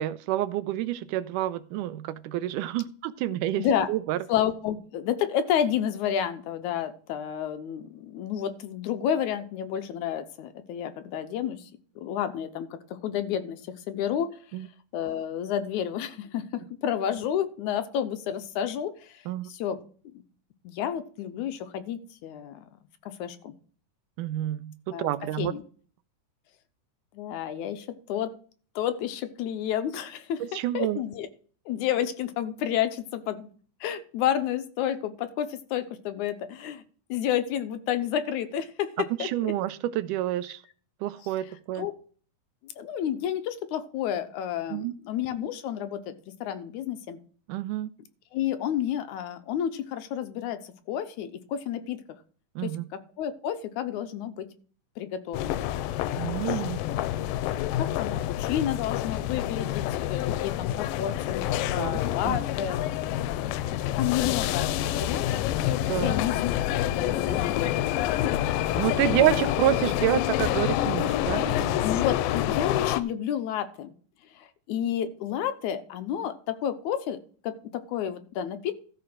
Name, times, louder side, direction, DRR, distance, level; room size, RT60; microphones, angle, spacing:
voice 1, 0.0-3.6 3.9-4.2 14.5-14.7 19.3-19.5 24.2-24.7 25.0-25.5 30.4-31.0 39.2-40.6 41.0-41.9 44.7-44.9 47.5-47.9 52.6-52.9 56.2-56.8 61.8-62.0 62.3-62.4 65.9-66.1 68.8-71.9, right 13 dB, 80° right, 13 dB, 2.1 m, -28 dB
voice 2, 3.6-3.9 4.3-11.7 12.0-13.6 13.9-14.3 14.9-19.8 20.6-22.7 23.1-23.5 24.9-25.1 25.4-25.6 27.1-28.3 28.8-31.3 31.7-33.5 33.8-36.8 37.1-39.5 41.4-41.5 41.8-41.9 42.6-46.2 46.4-47.2 48.3-52.2 52.6-54.5 55.0-55.7 56.2-56.6 57.6-63.5 64.0-68.0 69.0-69.4 71.8-73.9 74.4-77.2 77.4-78.7, left 10 dB, 75° left, 11 dB, 2.1 m, -31 dB
sound 1, 55.3-73.0, left 13 dB, 90° left, 2.4 m, -27 dB
13.5 x 4.9 x 6.1 m, 0.43 s
omnidirectional pair, 3.9 m